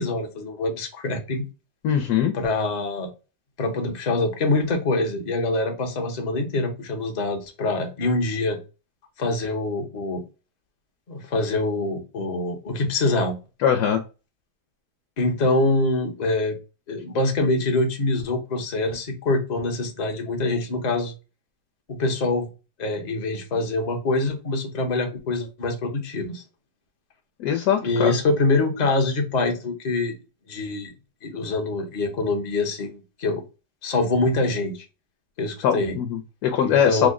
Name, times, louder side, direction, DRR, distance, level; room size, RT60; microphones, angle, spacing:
voice 1, 0.0-1.4 2.3-3.1 3.6-8.6 9.2-10.2 11.1-13.3 15.2-16.6 16.9-21.1 21.9-22.5 22.8-26.4 27.8-30.1 30.5-30.9 31.2-33.4 33.8-34.8 35.4-36.0 36.6-37.1, left 2 dB, 45° left, 3 dB, 0.5 m, -25 dB
voice 2, 1.8-2.3 13.6-14.0 27.4-28.1 35.6-37.1, left 8 dB, 70° left, 5 dB, 1.0 m, -21 dB
3.5 x 2.1 x 3.5 m, 0.31 s
omnidirectional pair, 1.9 m